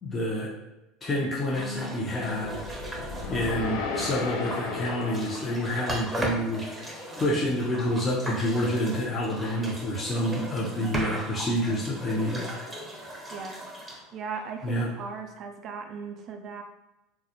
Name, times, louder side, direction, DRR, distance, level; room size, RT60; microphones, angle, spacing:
voice 1, 0.0-0.5 1.0-2.6 3.3-6.6 7.2-12.5 14.6-14.9, equal, 25° left, -6 dB, 0.6 m, -28 dB
sound 1, 1.5-15.0, right 1 dB, 15° right, 0.7 m, -38 dB
sound 2, 2.4-6.7, left 4 dB, 75° left, 0.4 m, -35 dB
voice 2, 13.3-13.6 14.1-16.6, right 5 dB, 50° right, 5 dB, 0.3 m, -38 dB
2.3 x 2.0 x 2.8 m, 0.96 s
hypercardioid pair, 80°, 0 cm